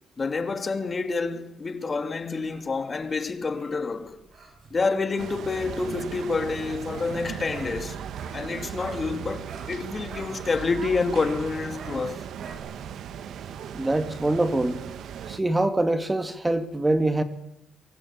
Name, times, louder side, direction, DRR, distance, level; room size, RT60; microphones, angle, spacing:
voice 1, 0.2-4.2 4.7-8.0 8.3-12.3, left 4 dB, 35° left, 2.8 m, -28 dB
sound 1, 2.2-9.2 9.4-12.5, right 5 dB, 55° right, 6.4 m, -48 dB
sound 2, 5.2-15.4, right 8 dB, 70° right, 1.6 m, -37 dB
voice 2, 13.7-14.8 15.3-17.2, right 2 dB, 15° right, 2.4 m, -24 dB
24.5 x 23.0 x 8.9 m
cardioid pair, 90°, 0 cm